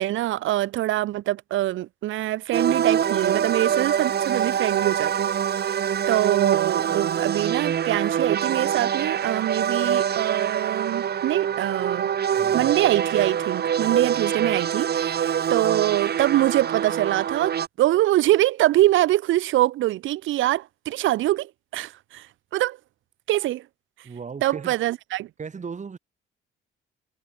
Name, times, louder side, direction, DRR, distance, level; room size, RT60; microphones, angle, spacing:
voice 1, 0.0-5.3 6.1-12.1 12.5-22.3 22.5-22.8 23.3-23.6 24.4-25.3, right 15 dB, 75° right, 0.7 m, -24 dB
sound 1, 2.5-17.7, right 8 dB, 55° right, 1.9 m, -25 dB
voice 2, 12.3-12.7 24.0-24.8 25.4-26.0, right 5 dB, 35° right, 3.9 m, -36 dB
cardioid pair, 90°, 20 cm